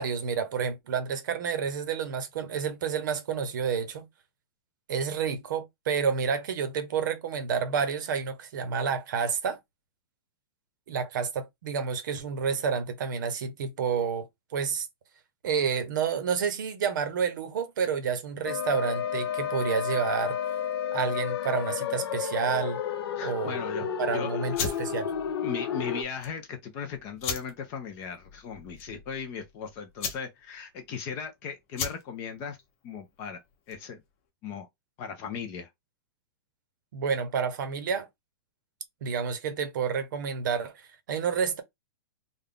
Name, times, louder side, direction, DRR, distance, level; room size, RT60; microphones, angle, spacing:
voice 1, 0.0-4.1 4.9-9.6 10.9-14.9 15.4-20.4 20.9-22.8 23.2-23.6 24.0-25.1 36.9-38.1 39.0-41.6, right 6 dB, 50° right, 0.7 m, -29 dB
sound 1, 18.4-26.0, left 8 dB, 70° left, 0.7 m, -31 dB
voice 2, 23.2-23.9 24.1-24.6 25.4-32.6 32.8-33.4 33.7-34.0 34.4-34.7 35.0-35.7, left 6 dB, 20° left, 0.4 m, -37 dB
sound 2, 24.5-34.0, left 6 dB, 35° left, 1.1 m, -39 dB
3.4 x 2.2 x 3.7 m
supercardioid pair, 180°, 13 cm